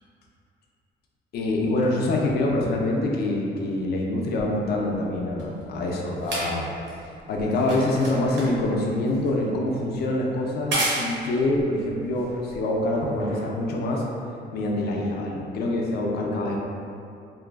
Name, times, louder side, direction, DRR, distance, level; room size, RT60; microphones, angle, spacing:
voice 1, 1.3-6.7 7.3-14.0 14.5-16.6, left 2 dB, 55° left, -1 dB, 0.4 m, -25 dB
sound 1, 4.4-13.0 13.8-13.9, right 1 dB, 65° right, 0.7 m, -34 dB
2.5 x 2.2 x 2.3 m, 2.5 s
cardioid pair, 155°, 19 cm